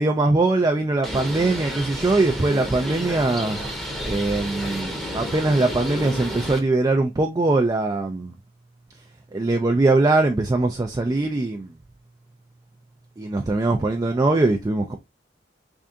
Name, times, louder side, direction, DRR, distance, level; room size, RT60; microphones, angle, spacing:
voice 1, 0.0-3.6 4.0-8.3 9.3-11.7 13.2-15.0, right 2 dB, 20° right, 0.3 m, -21 dB
Bird, 1.0-6.6, equal, ahead, 0.8 m, -31 dB
3.6 x 3.4 x 2.6 m
head